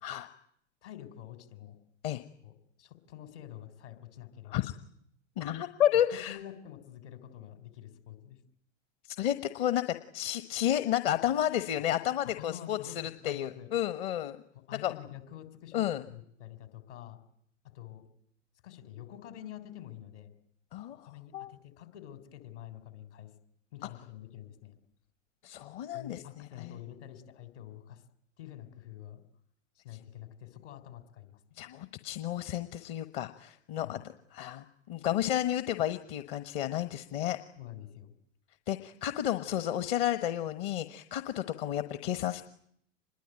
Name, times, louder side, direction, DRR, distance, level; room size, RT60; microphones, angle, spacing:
voice 1, 0.8-1.8 2.4-4.7 6.3-8.4 12.4-13.7 14.7-17.2 17.6-18.0 18.6-20.3 20.9-23.3 23.7-24.8 25.9-28.0 28.4-29.2 29.7-31.4 33.8-34.0 37.6-38.1, left 11 dB, 60° left, 9 dB, 4.1 m, -47 dB
voice 2, 5.4-6.4 9.0-14.4 14.8-14.9 15.7-16.0 20.7-21.5 25.4-26.2 26.6-26.7 31.5-34.0 34.3-37.4 38.7-42.4, left 11 dB, 45° left, 11 dB, 1.3 m, -31 dB
26.5 x 21.5 x 9.1 m, 0.72 s
figure-of-eight pair, 90°, 38 cm